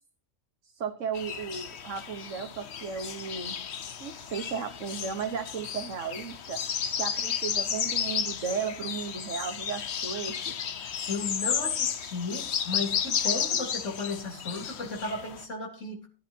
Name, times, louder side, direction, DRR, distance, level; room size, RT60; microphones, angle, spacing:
voice 1, 0.6-3.6 4.0-6.6 7.0-10.5, right 6 dB, 90° right, 6 dB, 1.5 m, -35 dB
sound 1, 1.1-15.4, left 8 dB, 65° left, 1.1 m, -33 dB
voice 2, 10.8-16.1, left 3 dB, 90° left, 0 dB, 3.9 m, -35 dB
18.0 x 11.0 x 2.8 m, 0.36 s
omnidirectional pair, 1.3 m